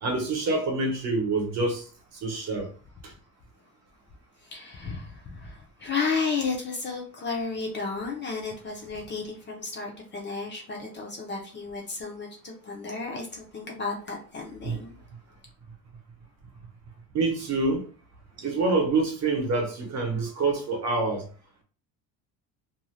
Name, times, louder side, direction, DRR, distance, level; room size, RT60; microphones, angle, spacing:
voice 1, 0.0-1.8 2.2-2.7 3.0-3.1 14.6-14.8 17.1-17.9 18.4-21.2, right 3 dB, 45° right, 0.9 m, -26 dB
voice 2, 4.4-14.9, left 4 dB, 30° left, 0.5 m, -33 dB
2.6 x 2.2 x 3.1 m
cardioid pair, 160°, 38 cm